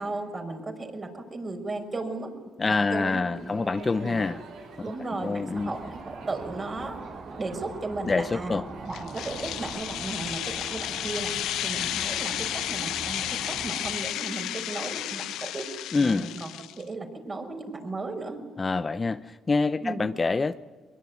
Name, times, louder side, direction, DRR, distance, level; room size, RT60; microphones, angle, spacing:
voice 1, 0.0-2.3 2.6-4.2 4.8-7.0 7.3-8.6 8.9-11.3 11.6-15.6 16.0-18.4 19.8-20.0, right 2 dB, 30° right, 6.2 m, -35 dB
voice 2, 2.6-4.4 5.2-5.7 8.1-8.6 15.9-16.3 18.6-20.6, left 3 dB, 30° left, 0.8 m, -26 dB
Crowd, 3.3-9.7, right 4 dB, 80° right, 4.9 m, -48 dB
sound 1, 5.6-14.0, right 3 dB, 50° right, 3.7 m, -42 dB
sound 2, 8.9-16.8, left 13 dB, 85° left, 0.9 m, -32 dB
23.0 x 22.5 x 9.5 m
cardioid pair, 90°, 0 cm